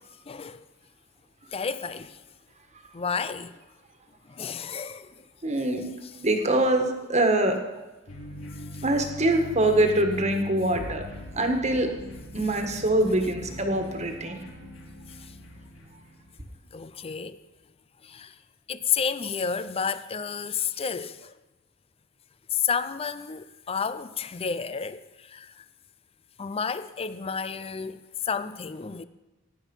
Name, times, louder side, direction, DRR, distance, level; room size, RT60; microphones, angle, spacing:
voice 1, 0.3-0.7 1.5-2.2 2.9-3.6 4.3-5.1 8.7-8.8 15.2-15.3 16.7-17.4 18.0-18.4 18.7-21.3 22.5-25.6 26.4-29.1, left 6 dB, 30° left, 0.5 m, -31 dB
voice 2, 5.4-5.8 6.2-7.6 8.8-11.0 11.3-11.9 12.3-14.4, right 1 dB, 35° right, 1.6 m, -24 dB
sound 1, 8.1-16.4, left 2 dB, 70° left, 2.8 m, -41 dB
16.0 x 10.0 x 5.5 m
head